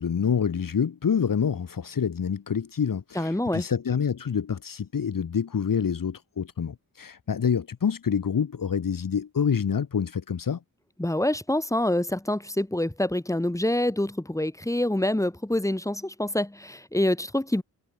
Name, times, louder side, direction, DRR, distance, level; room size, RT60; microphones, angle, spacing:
voice 1, 0.0-10.6, left 7 dB, 60° left, 2.8 m, -27 dB
voice 2, 3.1-3.6 11.0-17.6, left 1 dB, 10° left, 7.5 m, -26 dB
wide cardioid pair, 150°, 37 cm